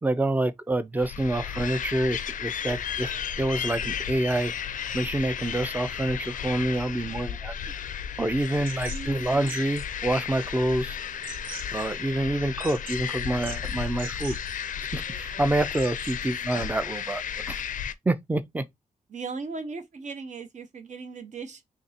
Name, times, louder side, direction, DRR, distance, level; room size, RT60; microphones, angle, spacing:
voice 1, 0.0-3.1 3.4-4.5 4.9-7.5 8.2-11.0 11.7-14.4 14.9-17.2 17.5-17.6 18.1-18.6, right 1 dB, 10° right, 0.4 m, -27 dB
sound 1, 1.0-17.9, left 8 dB, 65° left, 0.4 m, -34 dB
sound 2, 8.7-16.4, right 5 dB, 90° right, 0.9 m, -45 dB
voice 2, 8.9-9.5 16.5-16.7 19.1-21.6, right 4 dB, 60° right, 0.8 m, -38 dB
2.9 x 2.6 x 4.1 m
wide cardioid pair, 130°, 14 cm